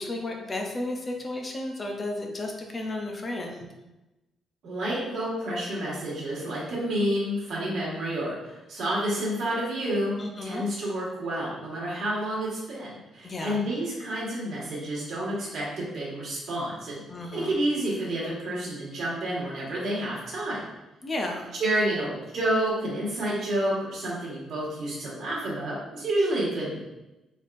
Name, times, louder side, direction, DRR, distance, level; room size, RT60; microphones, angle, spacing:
voice 1, 0.0-3.7 10.2-10.7 13.2-13.6 17.1-17.6 21.0-21.5, left 2 dB, 20° left, 2 dB, 0.5 m, -33 dB
voice 2, 4.6-10.1 10.4-17.0 17.3-20.7 21.6-26.8, right 1 dB, 50° right, -6 dB, 1.4 m, -29 dB
4.0 x 3.4 x 2.5 m, 1.0 s
cardioid pair, 175°, 0 cm